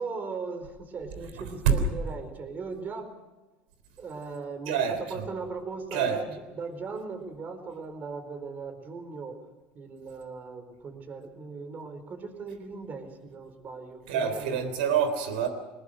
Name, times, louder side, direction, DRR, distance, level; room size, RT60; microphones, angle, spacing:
voice 1, 0.0-3.1 4.0-4.8 5.1-9.4 9.7-14.6, right 4 dB, 35° right, 8 dB, 4.3 m, -38 dB
voice 2, 4.7-5.3 5.9-6.2 14.1-15.5, right 7 dB, 85° right, 9 dB, 3.6 m, -26 dB
21.5 x 20.0 x 6.5 m, 1.1 s
supercardioid pair, 95°, 5 cm